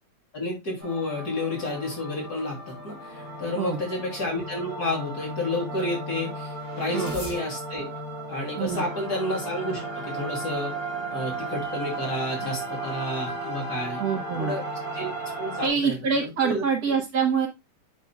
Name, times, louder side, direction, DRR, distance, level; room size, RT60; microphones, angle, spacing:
voice 1, 0.3-7.9 8.3-10.7 11.1-14.0 14.4-14.6 14.9-15.1 15.4-16.0 16.4-16.6, left 1 dB, 65° left, -2 dB, 3.5 m, -30 dB
sound 1, 0.8-15.7, right 2 dB, 35° left, 4.0 m, -35 dB
voice 2, 14.0-14.5 15.6-17.5, right 6 dB, 65° right, 1 dB, 1.7 m, -25 dB
8.3 x 6.9 x 2.3 m, 0.22 s
omnidirectional pair, 1.8 m